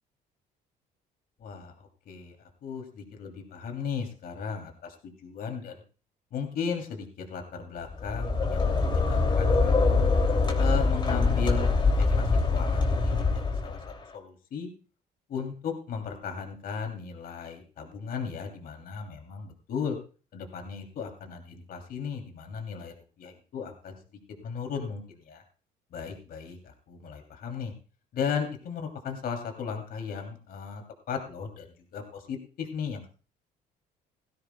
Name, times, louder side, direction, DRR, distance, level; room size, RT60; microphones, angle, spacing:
voice 1, 1.4-2.4 2.6-5.8 6.3-10.1 10.6-13.8 14.1-14.7 15.3-20.0 20.3-24.0 24.4-25.4 25.9-27.7 28.1-31.7 31.9-33.1, left 6 dB, 60° left, 3 dB, 3.1 m, -36 dB
sound 1, 7.9-13.9, left 3 dB, 30° left, 2.9 m, -24 dB
18.0 x 15.5 x 2.3 m, 0.36 s
cardioid pair, 110°, 17 cm